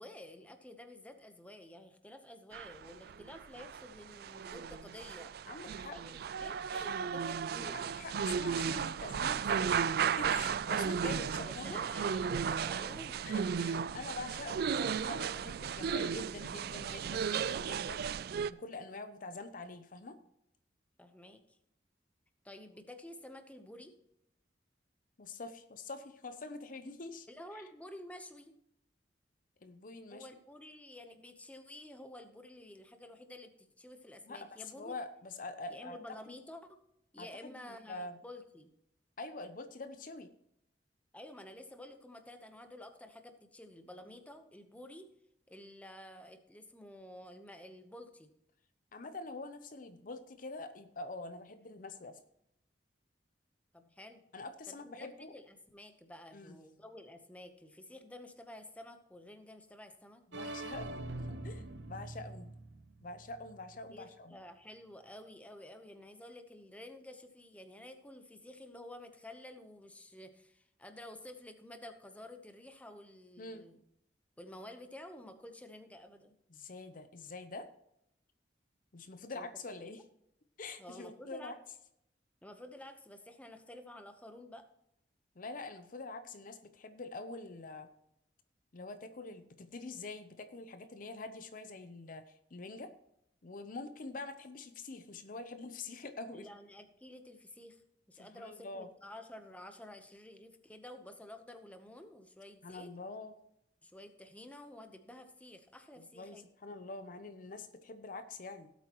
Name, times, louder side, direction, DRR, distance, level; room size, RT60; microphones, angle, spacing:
voice 1, 0.0-5.3 5.9-7.9 11.4-13.2 21.0-21.6 22.4-23.9 27.3-28.6 30.1-35.0 35.7-36.8 37.1-38.7 41.1-45.1 45.5-48.3 53.7-54.2 54.7-60.2 63.9-73.8 74.4-76.4 79.3-79.5 79.8-80.1 80.8-81.5 82.4-84.7 96.3-97.8 98.1-102.9 103.8-106.4, left 1 dB, 10° left, 7 dB, 0.9 m, -51 dB
sound 1, 2.5-18.5, right 7 dB, 60° right, 0.3 m, -35 dB
voice 2, 5.5-6.0 7.5-11.8 13.2-18.1 18.5-20.2 25.2-27.3 27.5-27.6 29.6-30.3 34.3-36.2 37.2-38.2 39.2-40.3 48.9-52.2 54.3-55.4 56.3-56.6 60.3-62.5 63.0-64.4 73.4-73.6 76.5-77.7 78.9-80.0 80.6-81.6 85.4-87.9 88.7-92.9 93.4-96.5 98.2-98.9 102.6-103.3 106.0-108.7, left 3 dB, 50° left, 10 dB, 0.7 m, -45 dB
sound 2, 60.3-64.1, right 2 dB, 85° right, 0.9 m, -44 dB
17.5 x 8.2 x 3.0 m, 0.77 s
head